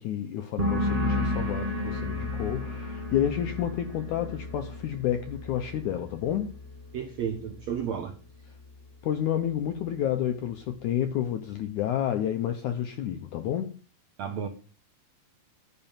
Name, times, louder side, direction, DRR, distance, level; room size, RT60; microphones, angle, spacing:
voice 1, 0.0-6.5 9.0-13.7, left 10 dB, 75° left, 1.8 m, -30 dB
sound 1, 0.6-8.0 8.3-8.9, left 2 dB, 25° right, 0.8 m, -33 dB
voice 2, 6.9-8.1 14.2-14.5, right 8 dB, 75° right, 1.6 m, -32 dB
11.0 x 5.5 x 8.8 m
omnidirectional pair, 4.6 m